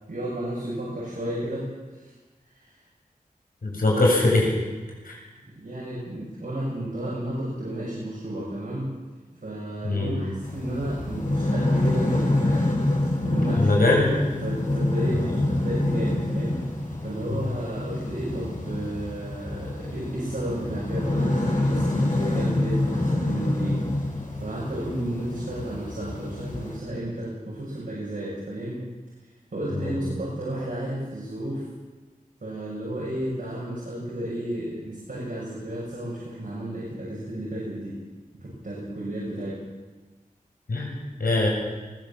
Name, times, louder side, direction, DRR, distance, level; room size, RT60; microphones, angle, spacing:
voice 1, 0.1-1.6 1.9-2.1 2.5-2.7 5.4-8.9 9.4-12.9 13.2-13.7 14.4-15.2 15.5-16.6 17.0-23.8 24.4-28.8 29.5-31.6 32.4-38.0 38.4-39.6, right 1 dB, 75° right, -7 dB, 7.1 m, -32 dB
voice 2, 3.6-4.5 5.0-5.2 9.8-10.2 13.6-14.2 15.2-15.5 29.7-30.0 40.7-40.9 41.2-41.5, left 2 dB, 85° left, -2 dB, 7.0 m, -22 dB
sound 1, 10.4-26.8, left 1 dB, 65° left, 5.9 m, -27 dB
22.0 x 16.5 x 7.4 m, 1.3 s
wide cardioid pair, 60°, 15 cm